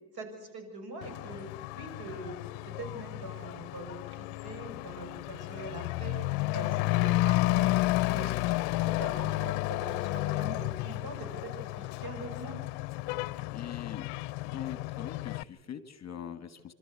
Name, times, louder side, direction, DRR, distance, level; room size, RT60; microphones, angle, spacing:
voice 1, 0.1-1.5 1.7-2.4 2.8-6.2 6.5-7.8 8.1-12.6, right 2 dB, 50° right, 6 dB, 6.5 m, -43 dB
Truck / Accelerating revving vroom, 1.0-15.4, left 20 dB, 75° left, 0.7 m, -32 dB
voice 2, 13.5-14.1 14.4-16.7, left 9 dB, 35° left, 12 dB, 1.6 m, -42 dB
28.5 x 13.0 x 8.2 m, 1.4 s
supercardioid pair, 95°, 48 cm